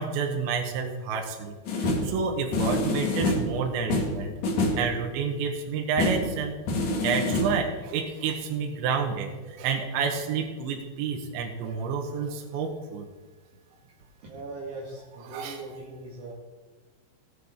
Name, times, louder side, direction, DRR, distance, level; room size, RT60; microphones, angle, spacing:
voice 1, 0.0-4.3 4.8-13.1 15.2-15.6, right 6 dB, 80° right, 2 dB, 3.3 m, -30 dB
sound 1, 1.7-2.2 2.5-3.6 3.9-4.9 6.0-6.3 6.7-7.5, left 2 dB, 55° left, 2.3 m, -26 dB
voice 2, 14.2-16.3, right 3 dB, 50° right, -5 dB, 2.1 m, -40 dB
19.0 x 8.8 x 3.6 m, 1.4 s
omnidirectional pair, 5.2 m